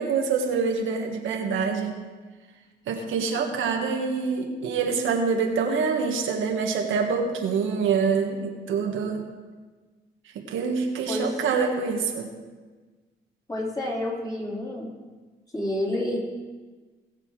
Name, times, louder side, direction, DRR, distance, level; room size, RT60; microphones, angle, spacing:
voice 1, 0.0-1.9 2.9-9.3 10.4-12.3, right 5 dB, 80° right, 2 dB, 1.7 m, -26 dB
voice 2, 11.1-11.4 13.5-14.9 15.5-16.2, left 1 dB, 20° left, -4 dB, 3.9 m, -29 dB
20.0 x 6.9 x 4.9 m, 1.4 s
cardioid pair, 90°, 20 cm